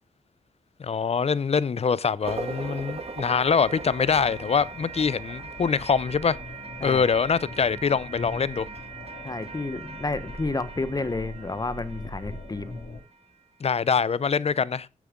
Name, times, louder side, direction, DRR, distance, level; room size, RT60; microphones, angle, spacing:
voice 1, 0.8-6.4 6.8-8.7 13.6-14.9, left 6 dB, 50° left, 0.6 m, -24 dB
sound 1, 2.2-13.4, right 4 dB, 45° right, 1.8 m, -40 dB
sound 2, 4.0-13.0, left 1 dB, 85° left, 3.3 m, -42 dB
voice 2, 9.2-12.7, left 3 dB, 30° left, 1.0 m, -31 dB
9.6 x 7.7 x 3.7 m
cardioid pair, 55°, 14 cm